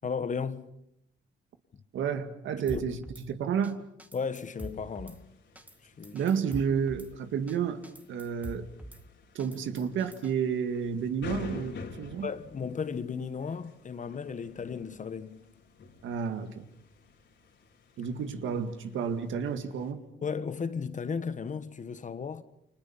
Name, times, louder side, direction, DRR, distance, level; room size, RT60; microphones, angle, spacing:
voice 1, 0.0-0.7 2.7-2.8 4.1-5.3 5.8-6.2 12.2-15.4 20.2-22.4, left 6 dB, 40° left, 1.4 m, -35 dB
voice 2, 1.9-3.8 6.1-7.8 8.1-8.7 9.3-12.3 16.0-16.6 18.0-20.0, right 7 dB, 75° right, 2.1 m, -31 dB
Drum kit / Snare drum, 2.7-3.3 3.6-3.7 4.0-5.2 5.6-5.8 6.0-7.1 7.5-7.6 7.8-9.0 9.4-10.3, right 1 dB, 5° right, 2.1 m, -44 dB
sound 1, 4.4-19.9, left 5 dB, 65° left, 4.3 m, -49 dB
29.5 x 25.0 x 5.8 m
cardioid pair, 90°, 20 cm